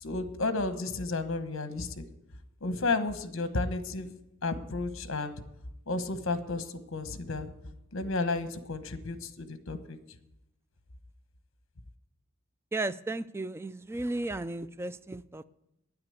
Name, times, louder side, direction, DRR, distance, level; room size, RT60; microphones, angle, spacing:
voice 1, 0.0-2.0 2.6-4.1 4.4-5.3 5.9-6.6 6.9-7.5 7.9-10.0, left 3 dB, 65° left, 9 dB, 1.1 m, -32 dB
voice 2, 12.7-15.4, right 2 dB, 10° right, 14 dB, 0.4 m, -34 dB
9.8 x 9.3 x 8.0 m, 0.86 s
head